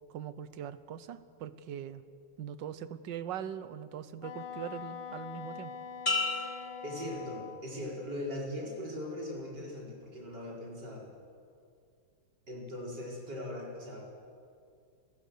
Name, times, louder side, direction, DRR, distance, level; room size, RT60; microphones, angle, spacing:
voice 1, 0.1-2.0 2.4-5.7, right 9 dB, 65° right, 13 dB, 1.4 m, -41 dB
Wind instrument woodwind instrument, 4.2-7.7, left 6 dB, 75° left, 1.9 m, -43 dB
sound 1, 6.1-7.8 8.3-8.8, left 3 dB, 25° left, 2.2 m, -35 dB
voice 2, 6.8-11.1 12.5-14.0, left 1 dB, 50° right, -3 dB, 5.3 m, -40 dB
28.0 x 15.5 x 6.8 m, 2.3 s
omnidirectional pair, 2.4 m